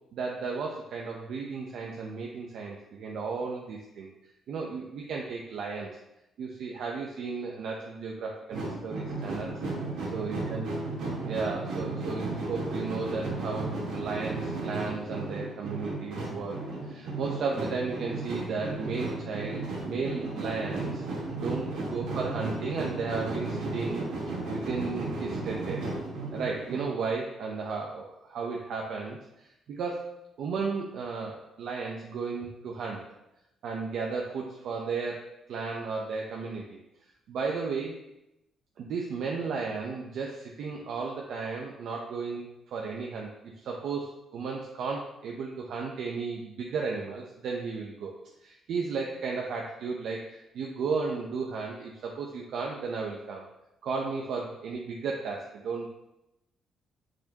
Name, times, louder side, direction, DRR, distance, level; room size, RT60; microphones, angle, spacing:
voice 1, 0.1-4.1 4.5-5.9 6.4-9.5 10.1-10.6 11.2-16.6 16.8-21.0 21.4-25.9 26.3-30.1 30.4-33.0 33.6-36.8 37.3-38.0 38.8-43.3 43.6-48.1 48.4-53.4 53.8-55.9, right 4 dB, 70° right, -1 dB, 0.8 m, -34 dB
sound 1, 8.5-26.8, right 2 dB, 90° right, 2.2 m, -34 dB
6.4 x 6.3 x 2.9 m, 0.89 s
cardioid pair, 90°, 0 cm